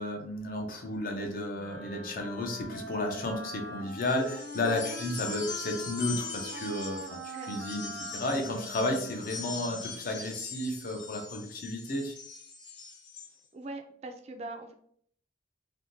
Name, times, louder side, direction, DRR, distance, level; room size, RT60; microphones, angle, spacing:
voice 1, 0.0-12.1, left 1 dB, 50° left, 3 dB, 0.5 m, -33 dB
Wind instrument woodwind instrument, 1.5-10.2, right 1 dB, 85° right, 0.5 m, -43 dB
sound 1, 3.9-13.3, left 5 dB, 80° left, 1.0 m, -42 dB
voice 2, 13.5-14.7, right 2 dB, 35° right, 6 dB, 0.3 m, -41 dB
3.3 x 2.1 x 2.6 m, 0.63 s
head